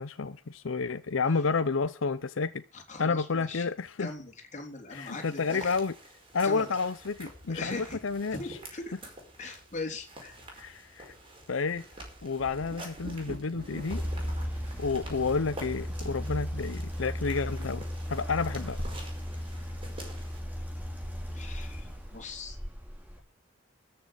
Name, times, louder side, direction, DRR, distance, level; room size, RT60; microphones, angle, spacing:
voice 1, 0.0-2.6 3.0-4.1 4.9-5.9 6.3-8.6 10.6-11.1 11.5-11.8 12.2-14.0 14.8-18.8, left 4 dB, 85° left, 0.7 m, -30 dB
voice 2, 2.7-3.7 4.0-5.8 6.4-6.7 7.5-8.0 8.3-8.9 9.4-10.4 21.3-22.6, left 3 dB, 40° left, 3.6 m, -40 dB
sound 1, 4.9-20.4, right 1 dB, 25° right, 5.1 m, -49 dB
sound 2, 7.0-22.4, equal, 45° right, 2.5 m, -50 dB
sound 3, 13.9-23.2, equal, 10° right, 3.5 m, -36 dB
13.5 x 6.8 x 8.2 m
head